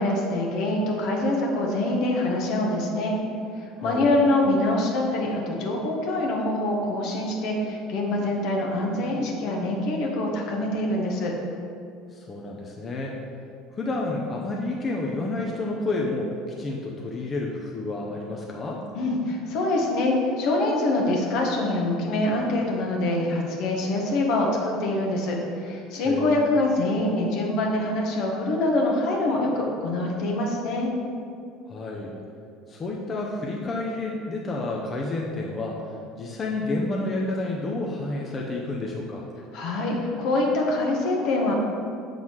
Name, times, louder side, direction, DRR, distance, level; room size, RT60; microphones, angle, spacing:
voice 1, 0.0-3.1 3.5-11.3 18.9-30.9 39.5-41.5, left 2 dB, 60° left, -1 dB, 1.2 m, -25 dB
voice 2, 3.8-4.2 12.1-13.2 13.8-18.8 26.0-26.5 31.7-32.1 32.7-35.8 36.2-39.3, left 2 dB, 35° left, -2 dB, 0.8 m, -30 dB
7.1 x 3.9 x 4.7 m, 2.4 s
hypercardioid pair, 75°, 0 cm